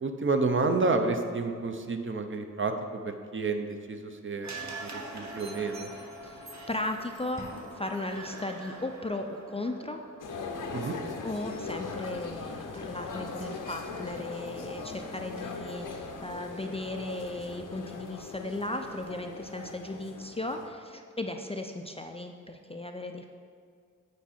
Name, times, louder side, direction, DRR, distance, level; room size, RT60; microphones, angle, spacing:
voice 1, 0.0-5.9 10.7-10.9, right 3 dB, 40° right, 6 dB, 0.6 m, -30 dB
sound 1, 4.4-12.7 13.0-13.1, right 2 dB, 60° right, 1.0 m, -45 dB
voice 2, 6.2-7.5 7.7-10.0 11.2-23.3, left 2 dB, 20° left, 4 dB, 0.3 m, -36 dB
sound 2, 7.4-8.4, equal, 10° right, 1.1 m, -45 dB
sound 3, 10.2-20.7, left 4 dB, 80° left, 0.7 m, -40 dB
8.2 x 4.6 x 4.3 m, 2.2 s
wide cardioid pair, 90°, 31 cm